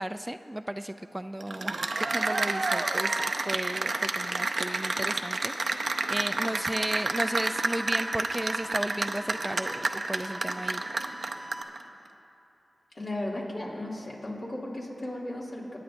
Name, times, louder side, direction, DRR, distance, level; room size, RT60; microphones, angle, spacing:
voice 1, 0.0-10.8, right 1 dB, 15° right, 10 dB, 0.3 m, -35 dB
Cheering / Applause, 1.4-11.8, right 3 dB, 70° right, 0.6 m, -29 dB
sound 1, 6.5-11.6, right 1 dB, 35° right, 0.8 m, -45 dB
voice 2, 12.9-15.8, left 1 dB, 65° left, -5 dB, 2.6 m, -35 dB
23.5 x 9.3 x 2.6 m, 2.9 s
cardioid pair, 45°, 0 cm